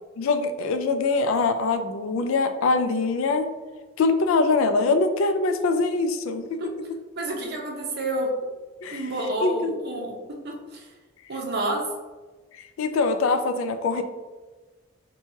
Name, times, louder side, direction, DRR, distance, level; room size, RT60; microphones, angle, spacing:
voice 1, 0.2-3.5 4.0-6.6 8.8-9.1 9.4-9.8 12.8-14.0, left 3 dB, 85° left, 8 dB, 0.4 m, -23 dB
voice 2, 7.1-8.3 8.9-10.1 10.4-10.9 11.3-11.8, right 1 dB, 55° right, 0 dB, 0.7 m, -29 dB
4.5 x 2.3 x 2.7 m, 1.3 s
head